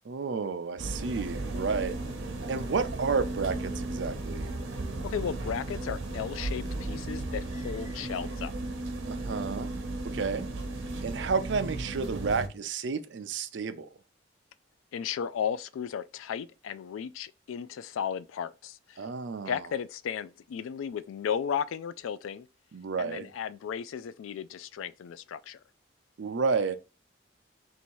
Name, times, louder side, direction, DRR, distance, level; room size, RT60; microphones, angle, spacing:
voice 1, 0.0-2.0 2.5-4.5 9.1-9.7 10.1-10.5 11.0-13.9 19.0-19.6 22.7-23.3 26.2-26.8, right 5 dB, 65° right, 0.4 m, -31 dB
sound 1, 0.8-12.5, right 2 dB, 90° right, 0.8 m, -35 dB
voice 2, 5.0-8.5 14.9-19.0 19.5-22.5 23.0-25.6, left 8 dB, 90° left, 0.3 m, -35 dB
3.1 x 2.8 x 4.5 m
head